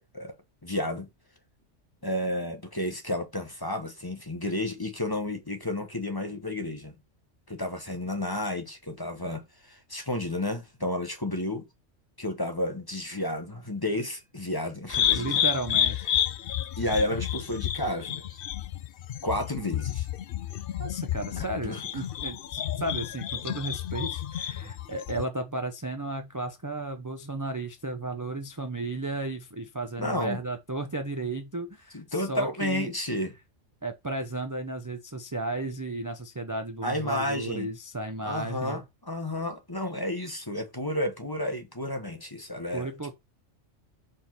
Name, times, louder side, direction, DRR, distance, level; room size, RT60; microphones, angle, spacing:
voice 1, 0.6-1.1 2.0-6.9 7.5-11.7 12.2-15.4 16.8-18.4 19.2-20.0 21.4-21.8 30.0-30.4 31.9-33.3 36.8-37.7 38.2-43.1, left 1 dB, 20° left, 1.1 m, -31 dB
sound 1, 14.9-25.3, left 11 dB, 60° left, 0.6 m, -30 dB
voice 2, 15.1-16.0 20.8-32.9 33.8-38.8 42.7-43.1, right 2 dB, 20° right, 0.6 m, -34 dB
5.2 x 4.4 x 5.9 m
omnidirectional pair, 1.3 m